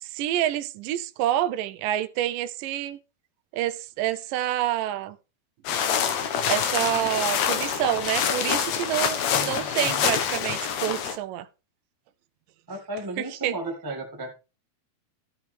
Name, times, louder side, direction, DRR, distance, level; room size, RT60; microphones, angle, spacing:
voice 1, 0.0-3.0 3.5-5.2 6.5-11.5 13.2-13.5, right 12 dB, 75° right, 2.3 m, -28 dB
sound 1, 5.6-11.2, left 8 dB, 65° left, 2.2 m, -26 dB
voice 2, 9.3-10.0 12.7-14.3, right 2 dB, 10° right, 1.3 m, -35 dB
13.5 x 10.0 x 3.5 m
omnidirectional pair, 4.0 m